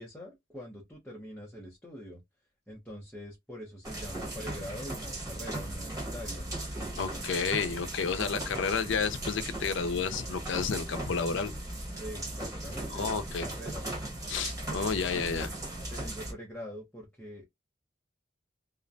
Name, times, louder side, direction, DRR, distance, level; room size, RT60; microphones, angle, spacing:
voice 1, 0.0-2.2 2.7-7.2 12.0-13.9 15.9-17.5, equal, 5° left, 0.6 m, -44 dB
sound 1, 3.8-16.3, right 1 dB, 20° right, 1.1 m, -38 dB
voice 2, 7.0-11.5 12.9-13.5 14.3-15.5, left 5 dB, 70° left, 0.4 m, -31 dB
2.4 x 2.1 x 2.5 m
head